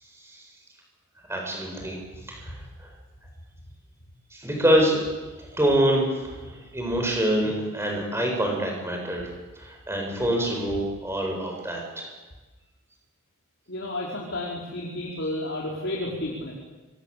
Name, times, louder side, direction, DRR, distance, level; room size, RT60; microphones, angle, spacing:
voice 1, 1.3-2.9 4.3-5.0 5.4-9.3 9.6-12.1, right 1 dB, 10° right, 0 dB, 7.9 m, -26 dB
voice 2, 13.7-16.5, left 1 dB, 60° left, -3 dB, 5.2 m, -31 dB
26.5 x 26.0 x 8.6 m, 1.2 s
head